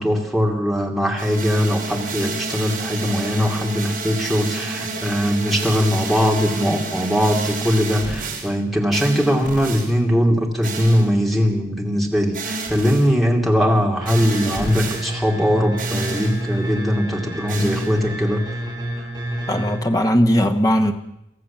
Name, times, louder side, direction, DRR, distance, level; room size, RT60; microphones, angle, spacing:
voice 1, 0.0-18.4, equal, ahead, -1 dB, 2.7 m, -20 dB
sound 1, 1.2-8.5 8.9-9.9 10.6-11.2 12.3-13.1 14.1-15.0 15.8-16.4 17.5-18.0, right 3 dB, 45° right, 4.9 m, -29 dB
sound 2, 14.0-19.8, right 1 dB, 20° right, 4.0 m, -29 dB
voice 2, 19.5-20.9, equal, 20° left, 5 dB, 1.4 m, -18 dB
24.5 x 14.5 x 7.3 m, 0.83 s
head